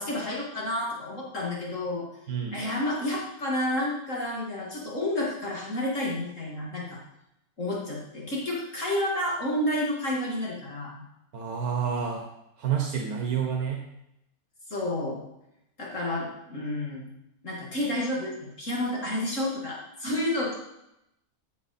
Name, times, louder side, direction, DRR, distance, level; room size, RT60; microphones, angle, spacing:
voice 1, 0.0-2.1 2.5-7.0 7.6-11.0 14.7-15.2 15.8-17.1 17.4-18.3 18.6-20.5, left 1 dB, 55° left, -4 dB, 2.4 m, -30 dB
voice 2, 2.3-2.6 11.3-12.2 12.6-13.9, right 7 dB, 80° right, 2 dB, 1.6 m, -29 dB
14.5 x 6.5 x 4.2 m, 0.85 s
omnidirectional pair, 1.6 m